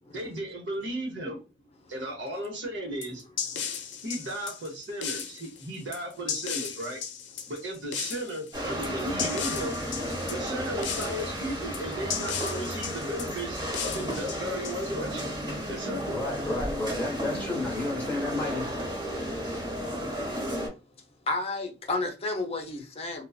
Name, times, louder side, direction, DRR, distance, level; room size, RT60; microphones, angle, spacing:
voice 1, 0.1-1.4 1.9-3.2 4.0-7.0 7.5-9.8 10.3-15.3 15.7-16.2, right 1 dB, 75° right, 0.9 m, -35 dB
sound 1, 3.0-15.2, left 7 dB, 75° left, 0.5 m, -36 dB
sound 2, 8.5-20.7, equal, 25° right, 1.2 m, -33 dB
voice 2, 16.1-18.7, left 2 dB, 10° left, 0.9 m, -31 dB
voice 3, 21.3-23.2, left 2 dB, 35° left, 0.6 m, -31 dB
2.4 x 2.2 x 2.3 m
head